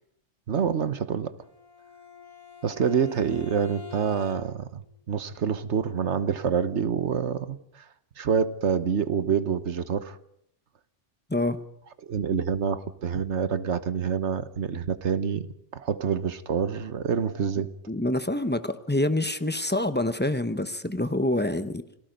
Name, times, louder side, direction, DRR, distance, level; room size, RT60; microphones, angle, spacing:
voice 1, 0.5-1.3 2.6-7.8 8.2-10.2 12.0-15.5 15.7-17.7, right 7 dB, 70° right, 1.4 m, -27 dB
Bowed string instrument, 1.4-4.8, left 6 dB, 30° left, 3.1 m, -44 dB
voice 2, 11.3-11.7 17.9-21.8, left 1 dB, 10° left, 0.8 m, -26 dB
28.5 x 18.5 x 5.3 m
omnidirectional pair, 1.2 m